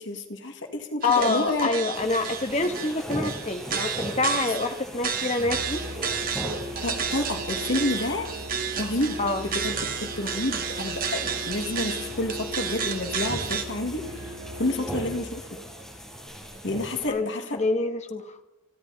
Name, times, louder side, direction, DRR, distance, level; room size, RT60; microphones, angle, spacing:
voice 1, 0.0-1.7 6.8-8.3 8.8-9.2 9.5-9.8 10.2-15.4 16.6-17.6, left 1 dB, 65° left, 5 dB, 2.1 m, -29 dB
voice 2, 1.0-5.8 9.2-9.5 14.8-14.9 17.1-18.3, left 3 dB, 35° left, 6 dB, 1.6 m, -26 dB
sound 1, 1.0-13.6, right 7 dB, 45° right, 2.0 m, -32 dB
sound 2, 1.9-17.1, equal, 5° left, 6.1 m, -39 dB
Musical instrument, 5.4-15.4, left 1 dB, 80° right, 2.5 m, -39 dB
29.0 x 11.0 x 4.2 m, 0.97 s
head